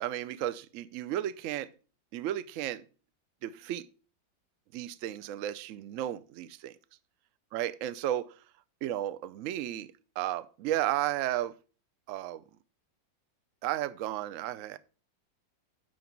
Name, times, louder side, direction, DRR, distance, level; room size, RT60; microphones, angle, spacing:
voice 1, 0.0-1.7 2.1-2.8 3.4-3.9 4.7-6.8 7.5-8.3 8.8-9.9 10.2-11.6 12.1-12.4 13.6-14.8, right 13 dB, 90° right, 0.6 m, -33 dB
10.0 x 4.0 x 5.8 m
omnidirectional pair, 2.0 m